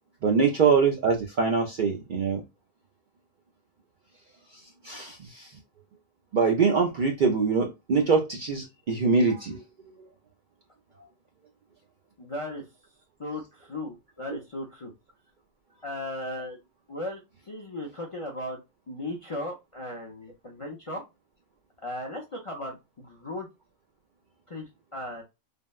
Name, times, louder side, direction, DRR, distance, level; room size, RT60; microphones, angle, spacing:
voice 1, 0.2-2.4 4.8-5.5 6.3-9.6, right 5 dB, 60° right, 2 dB, 0.5 m, -23 dB
voice 2, 12.2-12.7 13.2-14.9 15.8-16.6 16.9-18.6 18.9-21.0 21.8-23.5 24.5-25.2, left 1 dB, 45° left, -1 dB, 0.4 m, -36 dB
3.5 x 2.1 x 2.2 m, 0.23 s
omnidirectional pair, 1.3 m